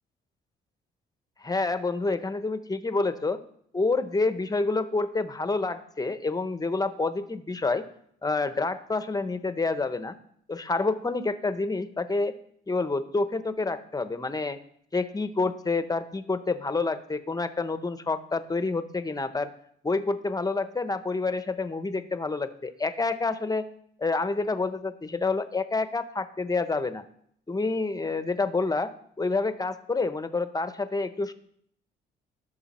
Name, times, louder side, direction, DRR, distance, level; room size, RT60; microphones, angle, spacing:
voice 1, 1.4-3.4 3.7-7.8 8.2-10.2 10.5-12.4 12.7-14.6 14.9-19.5 19.8-23.7 24.0-27.0 27.5-31.3, left 3 dB, 20° left, 11 dB, 0.9 m, -28 dB
16.5 x 6.8 x 4.3 m, 0.67 s
cardioid pair, 90°, 20 cm